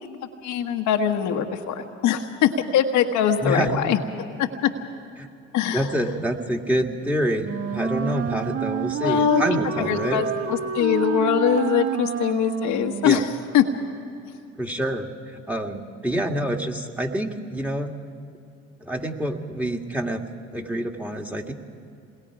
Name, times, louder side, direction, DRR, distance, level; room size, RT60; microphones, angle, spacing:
voice 1, 0.4-4.0 4.4-4.7 5.5-5.9 9.0-9.4 9.8-13.3 13.5-13.6, left 9 dB, 70° left, 4 dB, 1.4 m, -22 dB
voice 2, 3.4-3.8 5.2-5.3 5.7-10.2 13.0-13.2 14.6-17.9 18.8-20.2 20.5-21.5, right 1 dB, 5° right, 4 dB, 2.1 m, -27 dB
Wind instrument woodwind instrument, 7.4-13.3, right 8 dB, 50° right, 1.2 m, -29 dB
27.5 x 21.5 x 4.9 m, 2.5 s
hypercardioid pair, 65°, 30 cm